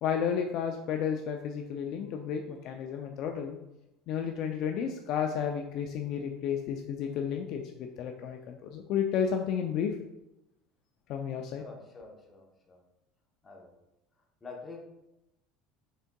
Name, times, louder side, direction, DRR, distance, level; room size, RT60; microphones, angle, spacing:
voice 1, 0.0-3.5 4.1-9.9 11.1-11.6, left 7 dB, 50° left, 3 dB, 0.3 m, -32 dB
voice 2, 11.5-12.8 13.4-13.7 14.4-14.8, left 3 dB, 20° left, 0 dB, 0.8 m, -47 dB
5.4 x 3.6 x 2.2 m, 0.90 s
cardioid pair, 145°, 0 cm